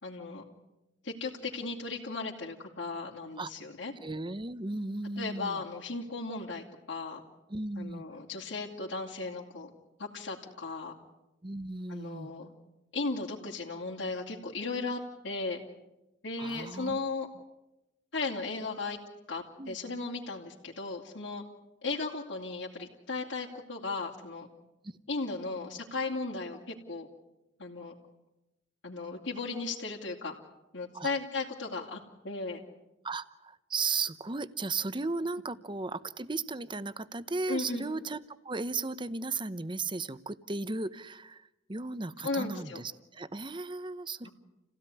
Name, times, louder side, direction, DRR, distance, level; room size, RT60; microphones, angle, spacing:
voice 1, 0.0-0.4 1.0-3.9 5.2-7.2 7.8-9.7 10.0-11.0 11.9-12.5 12.9-15.6 16.2-17.3 18.1-19.0 19.3-21.4 21.8-24.5 25.1-27.1 27.6-27.9 28.8-30.3 30.7-32.0 32.2-32.6 37.5-37.9 42.2-42.8 44.2-44.3, left 3 dB, 75° left, -3 dB, 2.9 m, -36 dB
voice 2, 4.0-5.6 7.5-8.0 11.4-12.3 16.4-17.0 19.6-19.8 24.8-25.0 30.9-31.1 33.0-44.3, right 3 dB, 25° right, 15 dB, 0.9 m, -36 dB
28.5 x 16.5 x 9.8 m, 0.98 s
head